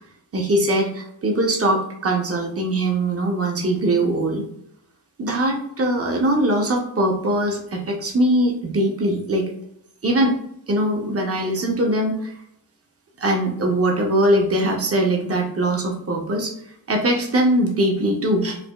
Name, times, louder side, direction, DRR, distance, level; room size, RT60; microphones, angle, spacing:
voice 1, 0.3-4.4 5.2-9.5 10.0-10.4 10.7-12.3 13.2-16.5 16.9-18.6, right 1 dB, 30° right, 1 dB, 0.8 m, -21 dB
4.8 x 2.2 x 2.3 m, 0.72 s
cardioid pair, 60°, 44 cm